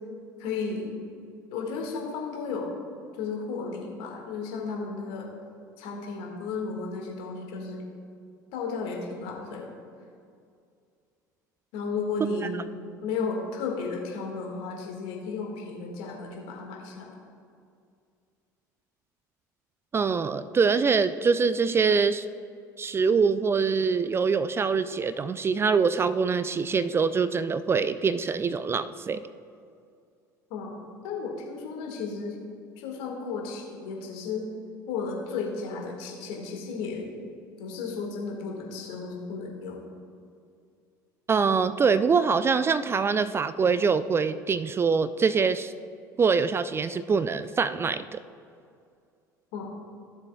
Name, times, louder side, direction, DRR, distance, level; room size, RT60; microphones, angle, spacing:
voice 1, 0.4-0.9 1.5-2.8 3.2-5.3 5.8-7.8 8.5-9.7 11.7-12.6 13.0-17.2 30.5-32.4 32.8-34.5 34.9-37.1 37.6-39.8 49.5-49.7, left 4 dB, 60° left, 0 dB, 1.7 m, -34 dB
voice 2, 19.9-22.2 22.8-29.2 41.3-45.7 46.2-48.2, right 5 dB, 25° right, 13 dB, 0.3 m, -24 dB
15.5 x 7.1 x 2.3 m, 2.3 s
hypercardioid pair, 65°, 10 cm